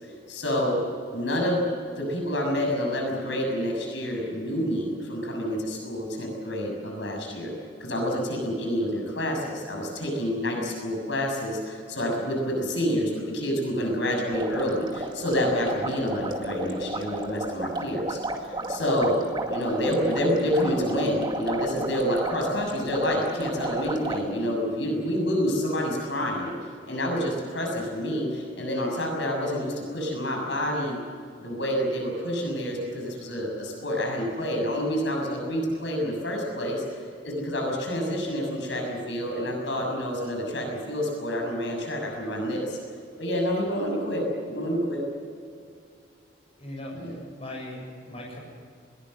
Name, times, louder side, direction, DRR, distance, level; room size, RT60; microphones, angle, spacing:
voice 1, 0.3-0.8 1.1-1.6 1.9-7.5 7.8-19.2 19.5-26.5 26.9-31.0 31.4-36.8 37.2-42.8 43.2-45.0 46.9-47.1, equal, 70° left, 1 dB, 6.8 m, -28 dB
sound 1, 14.3-24.2, right 2 dB, 25° right, 2.2 m, -33 dB
voice 2, 46.6-48.4, left 1 dB, 30° left, -1 dB, 7.2 m, -39 dB
22.0 x 20.5 x 7.7 m, 2.3 s
head